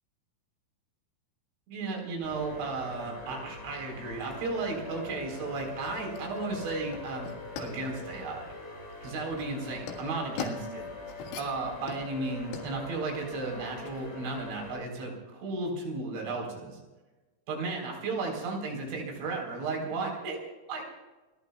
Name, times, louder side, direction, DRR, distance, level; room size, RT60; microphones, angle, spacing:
voice 1, 1.7-7.3 7.6-8.5 9.0-10.8 11.4-16.8 17.5-20.4 20.7-20.9, right 3 dB, 75° right, 0 dB, 6.3 m, -34 dB
sound 1, 2.2-14.8, left 3 dB, 35° left, 6.8 m, -43 dB
sound 2, 4.8-14.1, left 5 dB, 90° left, 4.2 m, -44 dB
29.0 x 21.0 x 2.4 m, 1.2 s
omnidirectional pair, 5.3 m